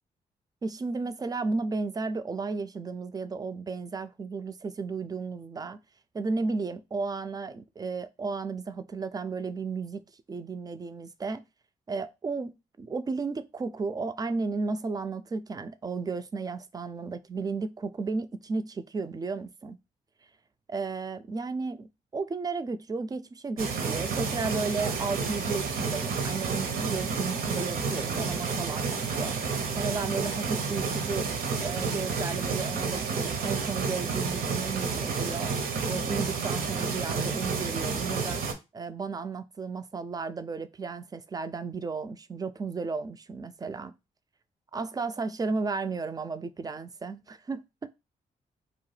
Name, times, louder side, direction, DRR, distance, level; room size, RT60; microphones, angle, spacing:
voice 1, 0.6-5.8 6.1-10.0 10.3-11.4 11.9-19.8 20.7-21.9 22.1-29.4 29.7-31.2 31.6-35.6 35.8-38.4 38.7-43.9 44.7-47.6, right 4 dB, 25° right, 0.3 m, -33 dB
sound 1, 23.6-38.5, right 5 dB, 70° right, 0.6 m, -30 dB
2.8 x 2.1 x 3.2 m
supercardioid pair, 60°, 16 cm